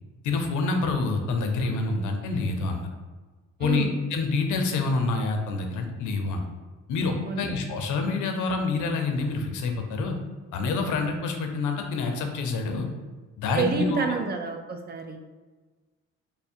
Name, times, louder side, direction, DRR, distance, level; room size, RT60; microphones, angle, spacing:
voice 1, 0.2-2.9 3.6-3.9 4.1-6.4 6.9-10.2 10.5-12.9 13.4-14.2, left 3 dB, 80° left, 4 dB, 0.6 m, -27 dB
voice 2, 3.6-3.9 7.3-7.5 13.5-15.2, right 4 dB, 35° right, 5 dB, 0.5 m, -28 dB
3.4 x 2.1 x 4.3 m, 1.3 s
cardioid pair, 90°, 30 cm